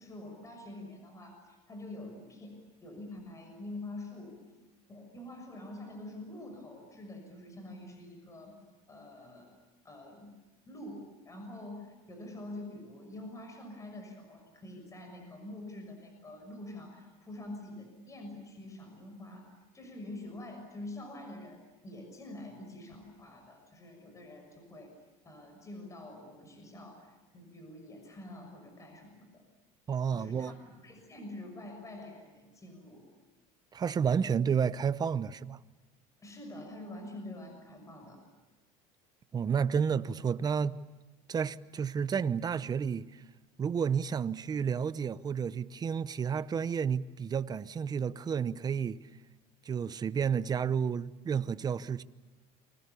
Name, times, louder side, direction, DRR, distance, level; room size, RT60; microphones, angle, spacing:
voice 1, 0.0-4.4 4.9-8.6 8.9-9.5 9.8-10.3 10.7-24.9 25.2-29.4 30.1-33.0 36.2-38.2, left 1 dB, 20° left, 6.3 m, -46 dB
voice 2, 29.9-30.6 33.7-35.6 39.3-40.8 41.3-43.2 43.6-49.0 49.6-52.0, right 7 dB, 25° right, 0.8 m, -31 dB
29.5 x 24.5 x 7.0 m
cardioid pair, 135°, 17 cm